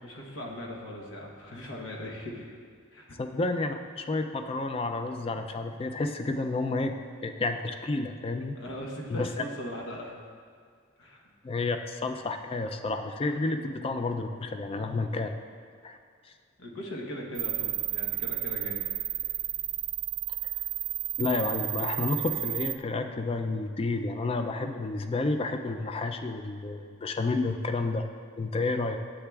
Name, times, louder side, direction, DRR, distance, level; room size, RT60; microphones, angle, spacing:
voice 1, 0.0-2.6 2.9-3.2 8.5-10.2 11.0-11.2 16.6-18.8, equal, 90° left, -1 dB, 1.1 m, -39 dB
voice 2, 3.2-7.0 7.2-8.5 9.1-9.3 11.4-15.4 15.8-16.0 21.2-28.0 28.4-29.0, left 3 dB, 30° left, 7 dB, 0.3 m, -30 dB
sound 1, 17.4-22.8, right 15 dB, 80° right, 0.3 m, -32 dB
9.9 x 7.5 x 2.3 m, 2.1 s
head